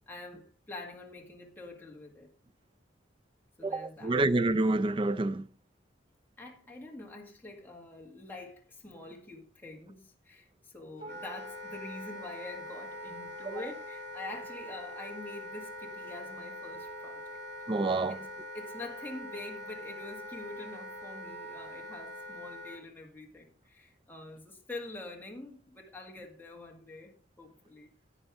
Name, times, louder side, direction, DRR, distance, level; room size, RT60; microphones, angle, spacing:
voice 1, 0.1-2.3 3.6-4.2 6.4-17.4 18.1-18.2 18.5-27.9, left 2 dB, 10° left, 1.9 m, -45 dB
voice 2, 3.6-5.4 17.7-18.2, right 2 dB, 25° right, 0.4 m, -27 dB
Wind instrument woodwind instrument, 11.0-22.8, left 1 dB, 60° right, 2.4 m, -43 dB
11.0 x 9.0 x 3.6 m
head